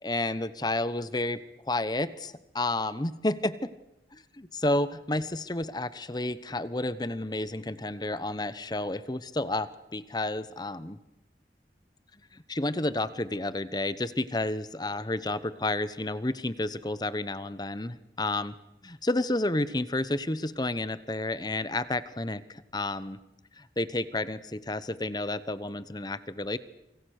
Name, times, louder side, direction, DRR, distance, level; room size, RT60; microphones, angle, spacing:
voice 1, 0.0-3.7 4.1-11.0 12.3-18.5 18.8-23.2 23.6-26.6, left 2 dB, 25° left, 15 dB, 1.0 m, -31 dB
28.0 x 25.5 x 6.6 m, 0.91 s
head